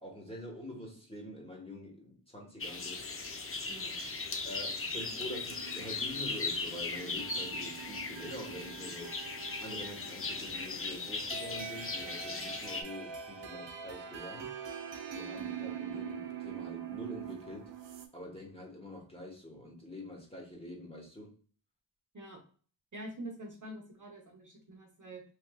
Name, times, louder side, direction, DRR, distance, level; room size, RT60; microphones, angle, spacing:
voice 1, 0.0-3.0 4.4-9.1 9.6-14.5 15.1-17.7 18.1-21.3, left 1 dB, 15° left, -1 dB, 1.2 m, -46 dB
sound 1, 2.6-12.8, left 3 dB, 30° left, 0.5 m, -38 dB
sound 2, 5.1-18.1, right 7 dB, 85° right, 0.6 m, -44 dB
voice 2, 22.9-25.2, right 1 dB, 45° right, 0 dB, 0.8 m, -46 dB
3.2 x 2.7 x 2.2 m, 0.41 s
wide cardioid pair, 55°, 43 cm